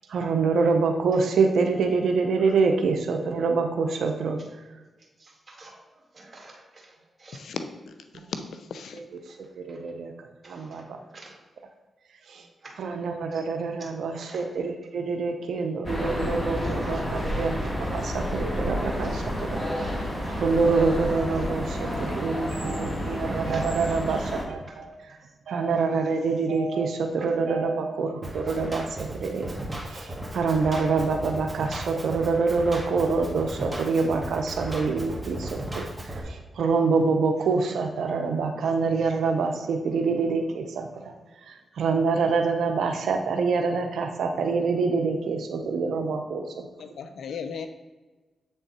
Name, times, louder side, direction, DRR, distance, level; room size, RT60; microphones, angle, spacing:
voice 1, 0.1-4.6 8.2-8.3 8.9-11.0 12.3-12.5 12.8-25.1 25.5-41.1 41.4-46.7, right 4 dB, 80° right, 4 dB, 0.6 m, -26 dB
voice 2, 5.2-7.4 9.3-9.4 9.7-9.8 10.4-11.4 12.3-12.9 13.3-13.4 14.1-14.5 16.6-17.2 17.6-17.7 19.0-19.3 21.4-21.5 21.9-22.2 23.5-23.7 24.7-25.0 27.2-27.3 28.5-28.7, right 2 dB, 40° right, 0 dB, 1.9 m, -47 dB
voice 3, 7.3-7.9 8.5-9.0 46.8-47.7, left 6 dB, 80° left, 8 dB, 0.5 m, -36 dB
sound 1, 15.8-24.4, equal, 10° left, 1.6 m, -30 dB
Drum kit, 28.2-36.2, right 1 dB, 15° right, 1.8 m, -36 dB
7.7 x 3.5 x 4.1 m, 1.2 s
cardioid pair, 55°, 0 cm